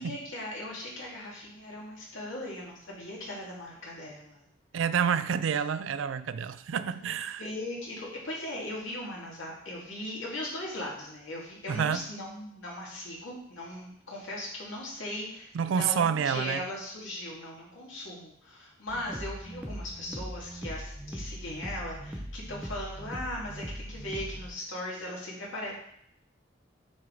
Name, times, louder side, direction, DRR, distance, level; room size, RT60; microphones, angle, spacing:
voice 1, 0.0-4.4 7.0-15.5 15.8-25.7, left 1 dB, 90° left, -4 dB, 2.2 m, -38 dB
voice 2, 4.7-7.4 11.7-12.1 15.5-16.6, right 7 dB, 85° right, 13 dB, 0.4 m, -28 dB
sound 1, 18.9-24.5, equal, 5° right, 0.7 m, -40 dB
6.3 x 4.4 x 3.9 m, 0.71 s
head